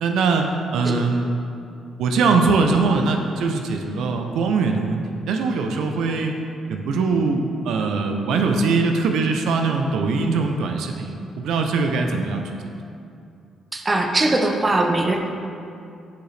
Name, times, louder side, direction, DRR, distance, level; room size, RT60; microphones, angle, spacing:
voice 1, 0.0-0.5 0.7-1.3 2.0-6.4 6.7-12.5, right 4 dB, 80° right, 4 dB, 0.4 m, -21 dB
voice 2, 13.7-15.2, right 2 dB, 25° right, 3 dB, 0.6 m, -21 dB
6.5 x 4.8 x 3.2 m, 2.5 s
cardioid pair, 90°, 0 cm